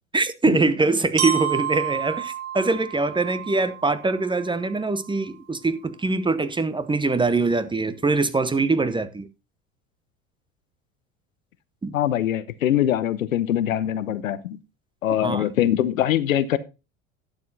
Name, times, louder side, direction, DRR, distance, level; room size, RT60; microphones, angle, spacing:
voice 1, 0.1-9.3 11.8-12.0 15.2-15.5, right 3 dB, 10° right, 0.9 m, -23 dB
Glockenspiel, 1.2-5.1, right 9 dB, 50° right, 2.6 m, -31 dB
voice 2, 11.9-14.6 15.0-16.6, left 11 dB, 80° left, 0.9 m, -23 dB
11.5 x 7.6 x 4.0 m
hypercardioid pair, 75°, 40 cm